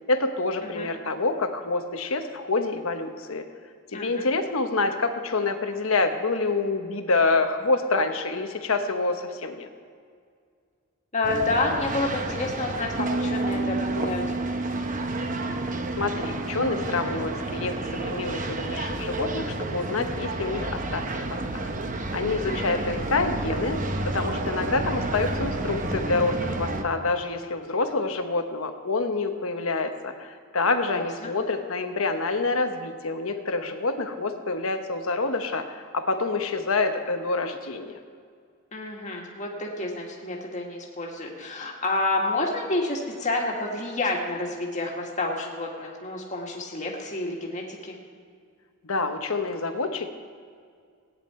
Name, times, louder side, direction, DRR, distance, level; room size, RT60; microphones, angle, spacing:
voice 1, 0.1-3.4 3.9-9.7 16.0-21.7 22.1-23.8 24.1-38.0 48.8-50.1, left 3 dB, 75° left, 6 dB, 1.1 m, -27 dB
voice 2, 3.9-4.3 11.1-14.2 22.4-22.8 30.9-31.3 38.7-48.0, left 2 dB, 35° left, -1 dB, 1.9 m, -29 dB
sound 1, 11.2-26.8, right 2 dB, 35° right, 0.8 m, -31 dB
Bass guitar, 13.0-22.3, right 2 dB, 85° right, 1.0 m, -34 dB
16.5 x 9.7 x 4.4 m, 2.1 s
head